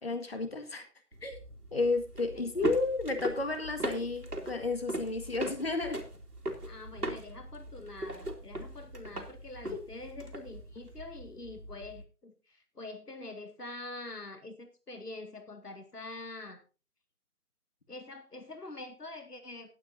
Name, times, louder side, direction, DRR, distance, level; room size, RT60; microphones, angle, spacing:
voice 1, 0.0-0.9 1.2-1.4 1.7-6.0, left 3 dB, 40° left, 7 dB, 1.8 m, -32 dB
sound 1, 1.1-12.0, right 1 dB, 80° right, 2.6 m, -39 dB
voice 2, 6.7-16.6 17.9-19.7, left 2 dB, 80° left, 7 dB, 2.1 m, -45 dB
18.5 x 8.7 x 2.7 m, 0.32 s
figure-of-eight pair, 160°, 46 cm